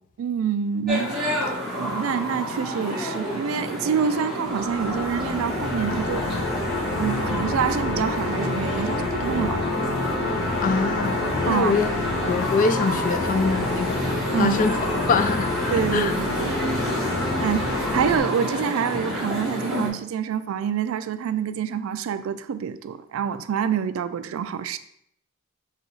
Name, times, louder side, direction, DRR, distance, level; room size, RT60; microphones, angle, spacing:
voice 1, 0.2-6.3 7.0-9.6 11.4-11.8 14.3-14.6 15.7-16.8 17.1-24.8, right 7 dB, 70° right, 13 dB, 0.3 m, -27 dB
sound 1, 0.9-19.9, left 1 dB, 5° left, 1.5 m, -29 dB
sound 2, 4.5-18.2, left 2 dB, 75° left, 0.9 m, -28 dB
voice 2, 10.6-11.9 12.3-14.1 14.4-14.8 15.1-15.5 15.9-16.1, left 4 dB, 40° left, 10 dB, 0.3 m, -23 dB
4.7 x 2.3 x 4.0 m, 0.70 s
head